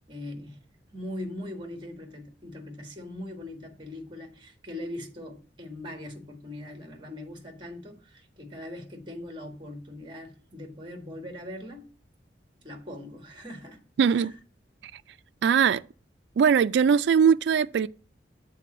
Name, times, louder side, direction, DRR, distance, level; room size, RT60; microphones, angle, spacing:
voice 1, 0.1-0.6 0.9-11.9 12.6-13.8 14.1-14.3, left 1 dB, 30° right, 1.5 m, -40 dB
voice 2, 14.0-14.3 15.4-15.8 16.4-17.9, right 7 dB, 70° right, 0.3 m, -20 dB
7.5 x 3.8 x 6.7 m
head